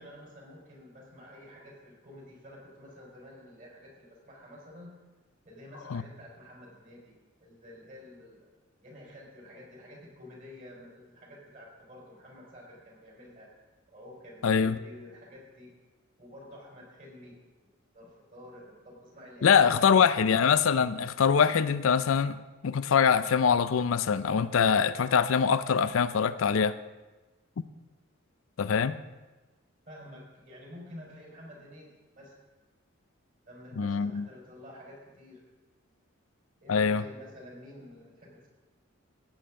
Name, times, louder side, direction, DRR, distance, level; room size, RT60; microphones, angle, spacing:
voice 1, 0.0-4.9 5.4-8.5 8.8-13.5 13.9-15.7 16.2-17.4 17.9-20.1 29.9-32.4 33.5-35.4 36.6-38.5, left 1 dB, 40° right, -3 dB, 4.7 m, -50 dB
voice 2, 14.4-14.8 19.4-22.4 22.6-26.8 28.6-29.0 33.8-34.3 36.7-37.0, left 6 dB, 75° left, 13 dB, 0.5 m, -24 dB
16.5 x 8.9 x 3.7 m, 1.2 s
head